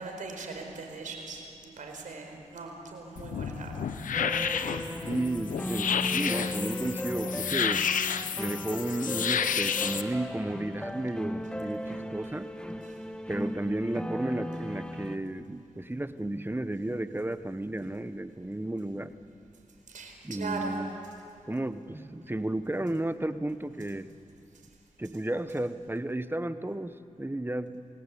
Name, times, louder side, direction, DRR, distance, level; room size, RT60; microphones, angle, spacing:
voice 1, 0.0-3.9 19.9-20.8, right 3 dB, 80° right, 3 dB, 4.6 m, -39 dB
sound 1, 3.2-10.0, left 7 dB, 85° left, 0.9 m, -31 dB
sound 2, 4.1-15.2, equal, 5° left, 1.7 m, -36 dB
voice 2, 5.1-7.8 8.4-12.5 13.3-19.1 20.2-20.9 21.5-24.1 25.0-27.8, right 1 dB, 15° right, 11 dB, 1.2 m, -33 dB
28.0 x 20.5 x 8.5 m, 2.6 s
cardioid pair, 45°, 13 cm